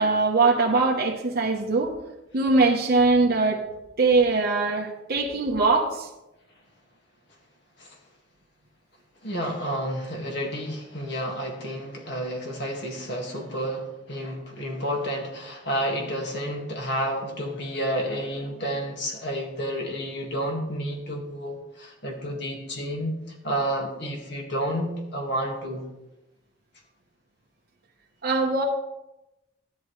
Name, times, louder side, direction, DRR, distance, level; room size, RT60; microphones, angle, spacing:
voice 1, 0.0-1.9 2.3-3.6 4.0-6.1 28.2-28.6, right 3 dB, 50° right, -2 dB, 1.0 m, -21 dB
voice 2, 9.2-25.9, equal, 60° left, 1 dB, 2.0 m, -30 dB
13.0 x 11.0 x 3.2 m, 0.95 s
head